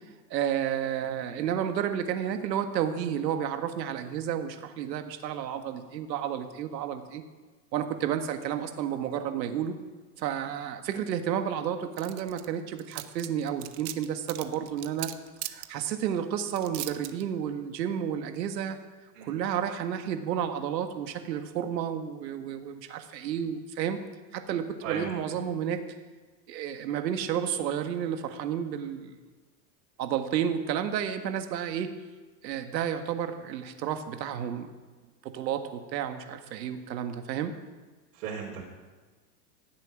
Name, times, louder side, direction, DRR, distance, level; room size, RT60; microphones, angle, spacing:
voice 1, 0.3-7.2 7.7-9.8 10.2-15.1 15.5-18.8 19.2-24.0 24.3-25.8 26.5-29.2 30.0-31.9 32.4-34.7 35.2-37.5, right 9 dB, 90° right, 7 dB, 1.8 m, -31 dB
sound 1, 12.0-12.4 12.8-15.7 16.5-17.2, right 17 dB, 40° right, 0.8 m, -37 dB
voice 2, 38.1-38.6, right 6 dB, 60° right, -4 dB, 3.7 m, -36 dB
16.0 x 7.8 x 8.9 m, 1.3 s
supercardioid pair, 160°, 49 cm